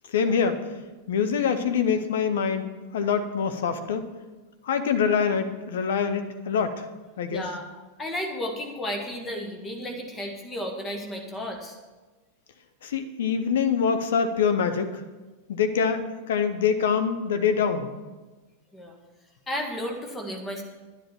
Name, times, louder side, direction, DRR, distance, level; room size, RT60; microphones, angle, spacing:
voice 1, 0.1-0.6 1.1-2.7 2.9-4.1 4.6-6.8 7.2-7.4 12.8-15.0 15.5-17.9, left 6 dB, 60° left, 9 dB, 0.9 m, -25 dB
voice 2, 7.3-7.7 8.0-11.8 18.7-19.0 19.5-20.6, equal, 15° left, 3 dB, 1.9 m, -33 dB
10.5 x 10.5 x 4.5 m, 1.2 s
figure-of-eight pair, 90°, 0 cm